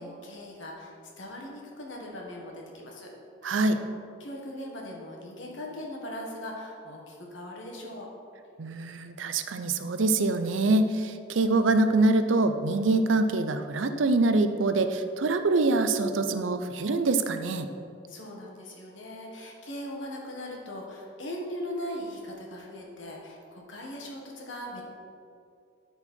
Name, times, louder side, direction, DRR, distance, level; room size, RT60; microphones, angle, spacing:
voice 1, 0.0-3.1 3.4-3.7 4.2-8.1 18.1-24.8, left 1 dB, 70° left, -1 dB, 1.6 m, -39 dB
voice 2, 3.4-3.8 8.6-17.7, right 2 dB, 70° right, 9 dB, 0.6 m, -25 dB
12.5 x 4.5 x 4.4 m, 2.5 s
head